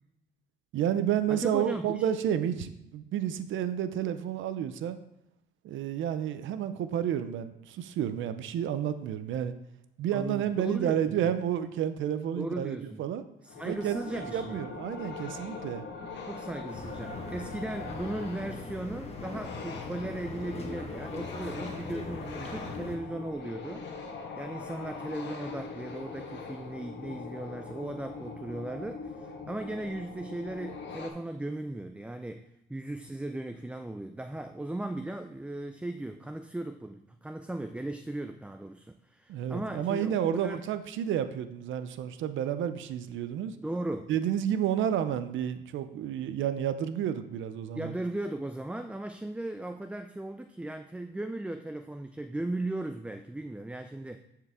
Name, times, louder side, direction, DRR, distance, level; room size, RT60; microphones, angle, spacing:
voice 1, 0.7-5.0 5.6-9.5 10.0-13.2 13.6-15.8 39.3-43.6 44.1-47.9, right 10 dB, 75° right, 11 dB, 0.6 m, -30 dB
voice 2, 1.3-2.1 10.1-11.3 12.3-13.1 13.4-14.7 16.3-40.6 43.5-44.1 47.7-54.2, right 1 dB, 5° right, 8 dB, 0.4 m, -37 dB
sound 1, 13.5-31.1, left 4 dB, 65° left, 1.3 m, -42 dB
sound 2, 16.7-23.0, left 3 dB, 30° left, 1.4 m, -41 dB
10.0 x 4.7 x 3.6 m, 0.84 s
cardioid pair, 90°, 20 cm